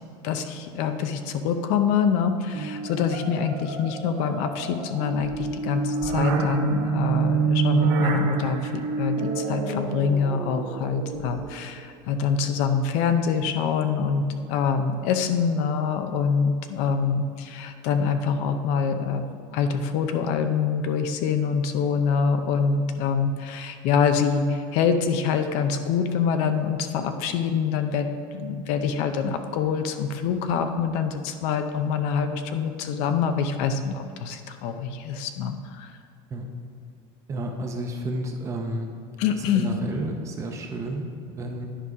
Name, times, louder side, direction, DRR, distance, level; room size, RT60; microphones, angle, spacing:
voice 1, 0.2-19.2 19.5-28.1 28.3-35.9 39.2-39.7, left 6 dB, 60° left, 7 dB, 0.7 m, -25 dB
sound 1, 2.5-11.6, right 5 dB, 60° right, 1.2 m, -27 dB
voice 2, 37.3-38.9 39.5-41.7, right 1 dB, 25° right, 3 dB, 0.8 m, -31 dB
10.0 x 5.4 x 4.9 m, 2.4 s
cardioid pair, 165°, 13 cm